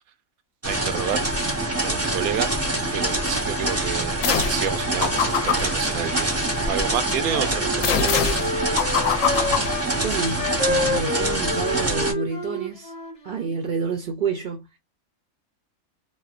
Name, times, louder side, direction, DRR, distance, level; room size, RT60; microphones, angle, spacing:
sound 1, 0.6-12.1, right 2 dB, 15° right, 0.6 m, -25 dB
voice 1, 0.6-1.2 1.8-2.5 2.9-8.1, right 9 dB, 85° right, 1.0 m, -29 dB
sound 2, 4.2-4.7 5.0-6.8 7.8-10.4, left 8 dB, 70° left, 0.9 m, -26 dB
Wind instrument woodwind instrument, 6.7-9.9 10.3-13.5, left 2 dB, 35° left, 0.8 m, -29 dB
voice 2, 10.0-12.9 13.2-14.7, right 5 dB, 60° right, 0.6 m, -29 dB
4.0 x 2.2 x 2.4 m
omnidirectional pair, 1.5 m